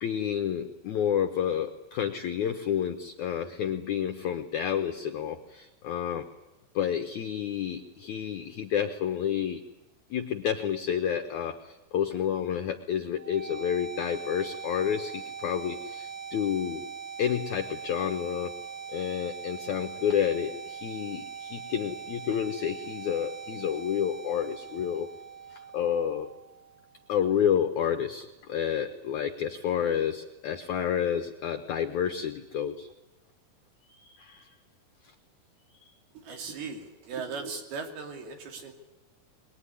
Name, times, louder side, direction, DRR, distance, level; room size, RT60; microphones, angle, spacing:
voice 1, 0.0-6.3 6.7-9.6 10.1-16.9 17.2-18.6 18.9-25.1 25.5-26.3 27.1-32.9 33.9-34.5 35.0-35.1 35.8-35.9, left 9 dB, 80° left, 6 dB, 1.7 m, -30 dB
sound 1, 13.2-27.1, right 6 dB, 20° right, 0.3 m, -41 dB
voice 2, 36.1-38.7, right 5 dB, 70° right, 3 dB, 4.5 m, -38 dB
23.0 x 20.5 x 9.8 m, 1.1 s
omnidirectional pair, 4.7 m